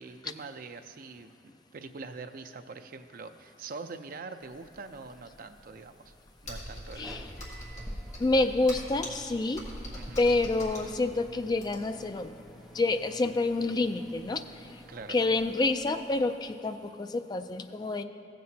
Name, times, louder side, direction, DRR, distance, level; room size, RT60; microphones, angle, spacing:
voice 1, 0.0-6.1 6.4-7.2 9.9-10.2 14.9-15.2, right 4 dB, 50° right, 8 dB, 0.5 m, -44 dB
sound 1, 4.4-16.2, equal, ahead, 0.9 m, -50 dB
Computer keyboard, 6.4-12.1, left 1 dB, 40° left, 1.9 m, -42 dB
voice 2, 7.0-7.3 8.2-9.6 10.2-12.3 12.7-14.4 14.7-14.8 15.1-18.0, left 2 dB, 25° left, 8 dB, 0.3 m, -28 dB
15.5 x 7.6 x 2.8 m, 2.7 s
head